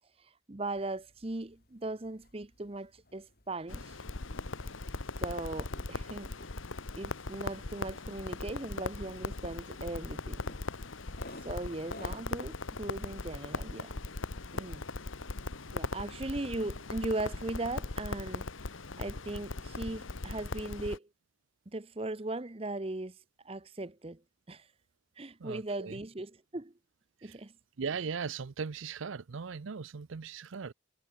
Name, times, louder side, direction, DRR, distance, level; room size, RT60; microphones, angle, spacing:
voice 1, 0.2-4.0 5.2-6.3 7.0-10.5 11.4-14.0 14.5-14.8 15.7-18.5 19.0-21.1 21.7-23.2 23.4-24.2 24.5-24.7 25.2-26.7 27.2-27.5, right 2 dB, 30° right, 0.8 m, -38 dB
sound 1, 0.6-17.1, left 1 dB, 50° left, 6.9 m, -57 dB
Crackle, 3.7-21.0, left 3 dB, 80° left, 1.3 m, -39 dB
voice 2, 25.4-26.0 27.2-27.4 27.8-30.7, right 5 dB, 75° right, 0.6 m, -38 dB
head